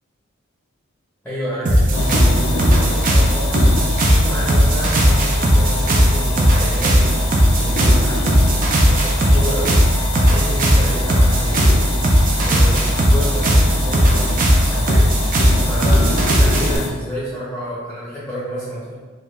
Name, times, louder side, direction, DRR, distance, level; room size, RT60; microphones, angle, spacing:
voice 1, 1.2-11.9 12.4-19.0, equal, 5° left, -9 dB, 0.7 m, -30 dB
sound 1, 1.7-16.8, equal, 40° right, 0.4 m, -16 dB
sound 2, 1.9-16.9, left 2 dB, 80° left, 0.6 m, -26 dB
3.3 x 2.3 x 3.0 m, 1.4 s
head